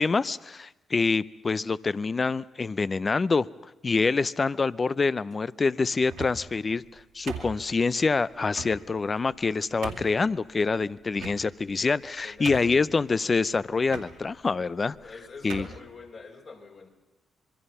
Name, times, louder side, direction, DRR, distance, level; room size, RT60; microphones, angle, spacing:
voice 1, 0.0-3.5 3.8-15.0 15.4-15.7, left 4 dB, 40° left, 18 dB, 0.6 m, -26 dB
sound 1, 6.0-6.6 7.3-7.9 8.5-8.8 9.3-9.4 9.8-10.2 11.2-11.7 12.1-12.2 12.5-12.9 13.9-14.1 14.9-15.1 15.5-15.8, right 6 dB, 80° right, 2.3 m, -39 dB
voice 2, 12.2-12.5 14.9-16.9, left 4 dB, 55° left, 0 dB, 4.8 m, -45 dB
26.0 x 22.0 x 5.6 m, 1.1 s
hypercardioid pair, 50°, 0 cm